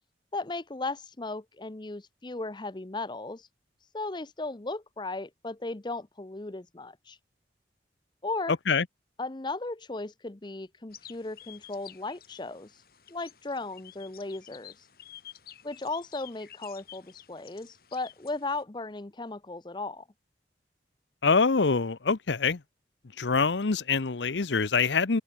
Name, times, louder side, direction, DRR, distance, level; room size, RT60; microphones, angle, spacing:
voice 1, 0.3-3.5 3.9-7.2 8.2-8.6 9.2-12.7 13.1-14.7 15.6-20.0, left 3 dB, 25° left, 0.7 m, -36 dB
sound 1, 10.9-18.6, left 11 dB, 60° left, 5.9 m, -51 dB
voice 2, 21.2-22.6 23.2-25.2, left 4 dB, 90° left, 0.9 m, -25 dB
open air
head